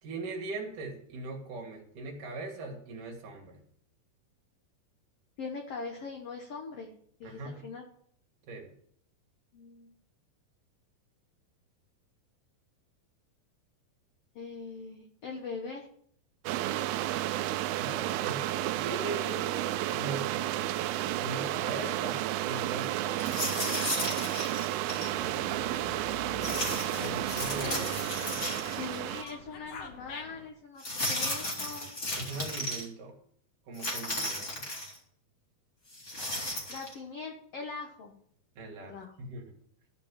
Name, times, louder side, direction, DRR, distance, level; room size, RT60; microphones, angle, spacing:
voice 1, 0.0-3.6 7.2-7.7 8.5-8.7 17.8-18.5 18.8-20.7 21.2-23.5 27.0-27.8 28.1-28.4 32.1-33.1 33.7-34.7 38.6-39.6, right 3 dB, 60° right, 1 dB, 3.2 m, -40 dB
voice 2, 5.4-6.9 7.2-7.8 9.5-9.9 14.3-15.9 17.7-17.9 27.6-27.9 28.6-31.9 36.7-38.1 38.8-39.1, left 4 dB, 90° left, 1 dB, 1.3 m, -41 dB
sound 1, 16.5-29.2, right 14 dB, 80° right, 2.4 m, -32 dB
sound 2, 23.2-25.1 26.4-29.0 29.3-29.4 30.8-32.8 33.7-35.0 35.9-36.9, left 1 dB, 20° left, 2.3 m, -35 dB
Dog, 24.8-30.5, left 5 dB, 65° left, 2.7 m, -46 dB
13.5 x 5.3 x 7.3 m, 0.67 s
omnidirectional pair, 4.5 m